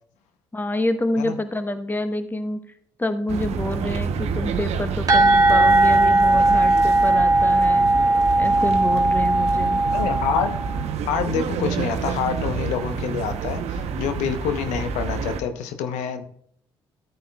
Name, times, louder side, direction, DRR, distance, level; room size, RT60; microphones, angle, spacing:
voice 1, 0.5-2.6 3.0-7.9 8.4-9.8, left 1 dB, 15° left, 10 dB, 1.0 m, -27 dB
sound 1, 3.3-15.4, right 5 dB, 60° right, 0.8 m, -28 dB
sound 2, 5.1-10.7, right 2 dB, 30° right, 2.0 m, -18 dB
voice 2, 9.9-10.6 11.1-16.3, left 7 dB, 70° left, 9 dB, 0.9 m, -27 dB
13.5 x 8.0 x 2.3 m, 0.68 s
hypercardioid pair, 50°, 12 cm